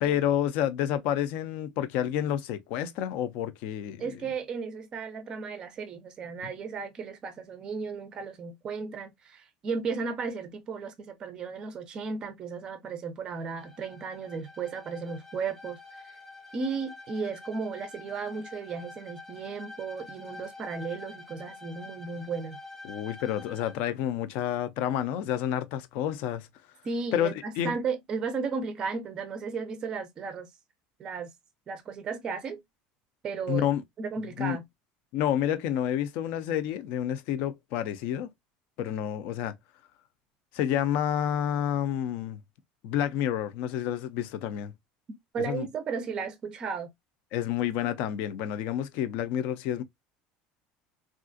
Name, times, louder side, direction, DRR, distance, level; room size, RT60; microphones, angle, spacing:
voice 1, 0.0-4.1 22.8-26.5 27.1-27.8 33.5-33.8 34.4-34.6 35.1-38.3 38.8-39.5 40.5-42.4 42.8-44.7 45.4-45.7 47.3-49.8, left 10 dB, 55° left, 0.4 m, -29 dB
voice 2, 4.0-15.8 16.5-22.6 26.8-30.5 31.0-31.3 31.7-32.6 33.2-33.7 34.0-34.6 45.3-46.9, right 5 dB, 25° right, 0.5 m, -34 dB
Bowed string instrument, 13.3-23.8, left 3 dB, 5° left, 0.7 m, -47 dB
3.4 x 2.4 x 2.4 m
cardioid pair, 175°, 3 cm